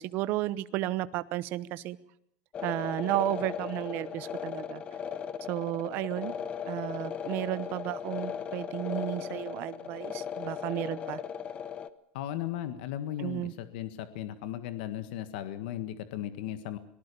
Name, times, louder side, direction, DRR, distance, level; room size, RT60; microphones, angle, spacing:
voice 1, 0.0-2.0 2.6-4.8 5.5-6.3 6.7-11.2 13.2-13.5, right 15 dB, 40° right, 16 dB, 0.9 m, -33 dB
sound 1, 2.5-11.9, left 7 dB, 20° left, 0.9 m, -37 dB
voice 2, 12.1-16.8, left 12 dB, 70° left, 11 dB, 1.7 m, -36 dB
24.0 x 19.0 x 7.0 m, 0.71 s
cardioid pair, 180°, 5 cm